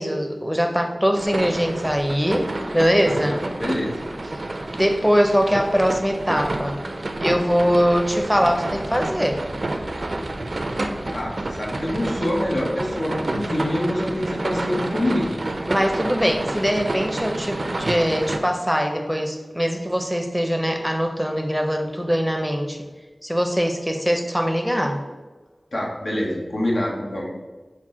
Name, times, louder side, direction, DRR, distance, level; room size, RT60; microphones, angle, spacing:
voice 1, 0.0-2.5 2.7-3.4 4.7-6.8 7.2-9.4 15.7-22.8 23.2-25.0, equal, ahead, 4 dB, 0.5 m, -22 dB
sound 1, 1.1-18.4, right 2 dB, 65° right, 0.4 m, -29 dB
voice 2, 3.0-4.1 11.1-15.4 25.7-27.3, left 1 dB, 85° left, -3 dB, 0.9 m, -26 dB
5.8 x 2.2 x 3.6 m, 1.2 s
wide cardioid pair, 45°, 0 cm